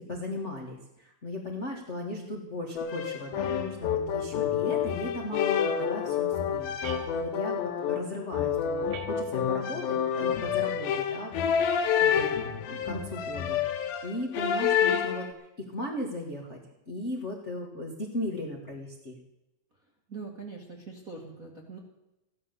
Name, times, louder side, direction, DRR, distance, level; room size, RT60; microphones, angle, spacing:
voice 1, 0.1-13.6 14.0-15.3 15.7-16.6 16.9-19.2, left 1 dB, 35° left, -1 dB, 1.1 m, -37 dB
sound 1, 2.8-15.3, left 8 dB, 85° left, 3.0 m, -28 dB
sound 2, 6.8-7.7 8.9-9.7 10.9-11.7, right 7 dB, 80° right, 2.8 m, -46 dB
voice 2, 20.1-21.8, right 4 dB, 35° right, -1 dB, 1.4 m, -42 dB
15.0 x 11.5 x 6.8 m, 0.92 s
omnidirectional pair, 4.2 m